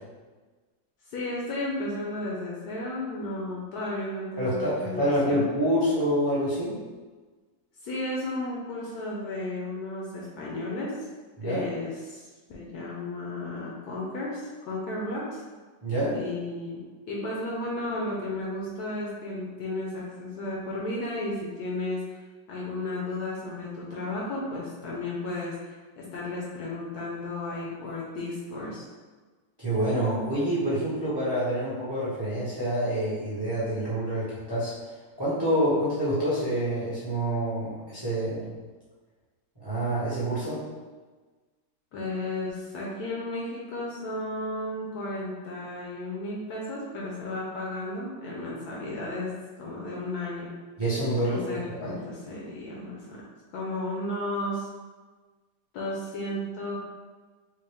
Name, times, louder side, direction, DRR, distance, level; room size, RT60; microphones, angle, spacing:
voice 1, 1.1-5.5 7.8-11.0 11.4-15.4 16.1-22.2 22.5-28.8 41.9-49.3 49.6-50.5 51.3-53.2 53.5-54.7 55.7-56.8, left 2 dB, 70° left, -4 dB, 1.0 m, -34 dB
voice 2, 4.4-6.7 11.4-11.7 15.8-16.2 29.6-34.7 35.2-38.5 39.6-40.6 50.8-51.4 51.8-51.9, right 1 dB, 20° right, -9 dB, 0.6 m, -27 dB
3.8 x 2.4 x 3.3 m, 1.4 s
omnidirectional pair, 2.0 m